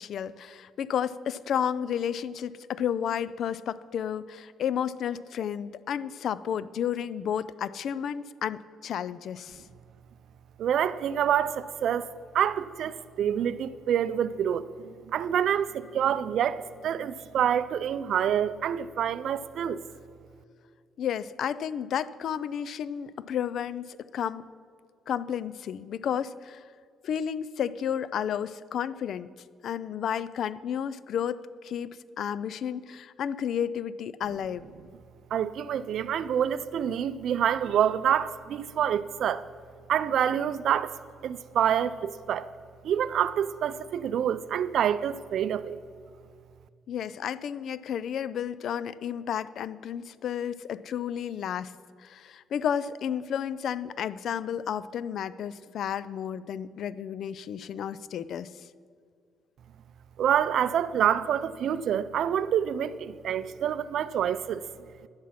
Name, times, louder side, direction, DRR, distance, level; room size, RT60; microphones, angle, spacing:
voice 1, 0.0-9.6 21.0-24.5 25.1-26.7 27.0-29.3 29.6-34.7 46.9-51.7 52.0-58.5, left 8 dB, 65° left, 0.4 m, -32 dB
voice 2, 10.6-12.1 12.3-19.8 35.3-39.4 39.9-40.9 41.2-42.5 42.8-45.8 60.2-64.6, right 9 dB, 65° right, 0.5 m, -27 dB
11.0 x 9.5 x 5.9 m
cardioid pair, 110°, 0 cm